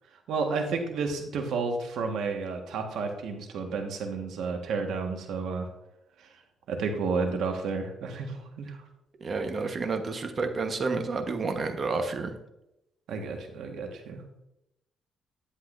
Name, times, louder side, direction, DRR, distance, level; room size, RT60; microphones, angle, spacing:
voice 1, 0.3-5.7 6.7-8.8 13.1-14.2, right 4 dB, 75° right, 3 dB, 1.5 m, -31 dB
voice 2, 9.2-12.3, right 4 dB, 45° right, 6 dB, 1.2 m, -30 dB
10.5 x 8.0 x 2.6 m, 0.87 s
cardioid pair, 90°, 0 cm